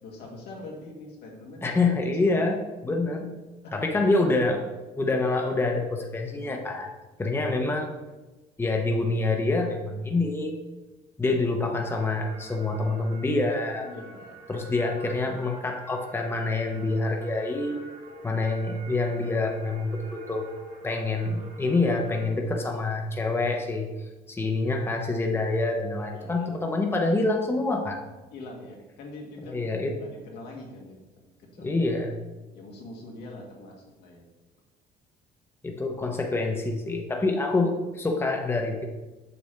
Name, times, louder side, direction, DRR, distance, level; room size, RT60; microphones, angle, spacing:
voice 1, 0.0-1.8 2.2-2.4 3.6-4.0 13.8-14.4 26.1-26.5 28.3-29.6 30.0-31.8 32.5-34.3, left 2 dB, 75° left, 0 dB, 1.7 m, -43 dB
voice 2, 1.6-3.3 3.7-4.7 5.0-6.9 7.2-7.9 8.6-10.6 11.2-13.9 14.5-17.8 18.2-20.5 20.8-23.9 24.3-28.0 29.5-30.0 31.6-32.2 35.6-38.8, left 2 dB, 15° left, 2 dB, 0.8 m, -26 dB
sound 1, 11.8-22.3, right 2 dB, 90° right, 2.4 m, -47 dB
6.8 x 5.9 x 3.3 m, 1.1 s
cardioid pair, 110°, 17 cm